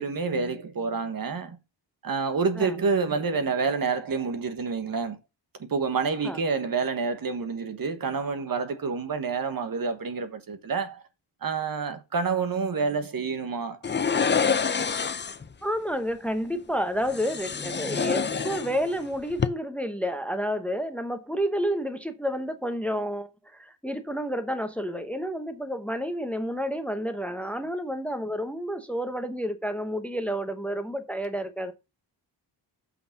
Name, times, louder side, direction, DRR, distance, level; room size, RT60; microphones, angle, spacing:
voice 1, 0.0-1.6 2.0-5.2 5.6-11.0 11.4-13.8, right 5 dB, 50° right, 1.3 m, -28 dB
sound 1, 13.8-15.5 17.1-19.0 19.3-19.5, left 6 dB, 25° left, 0.5 m, -27 dB
voice 2, 15.6-31.7, equal, 5° left, 0.9 m, -30 dB
8.5 x 5.7 x 5.7 m
wide cardioid pair, 170°, 44 cm